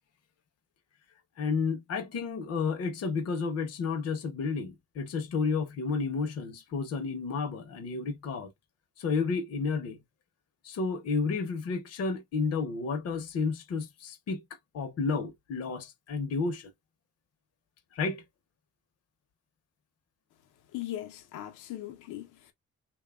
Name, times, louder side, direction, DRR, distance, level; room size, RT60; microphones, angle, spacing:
voice 1, 1.4-8.5 9.0-10.0 10.6-14.4 14.7-16.7 17.9-18.2, left 4 dB, 55° left, 0.7 m, -31 dB
voice 2, 20.7-22.5, left 13 dB, 85° left, 0.6 m, -39 dB
2.9 x 2.2 x 2.2 m
cardioid pair, 90°, 30 cm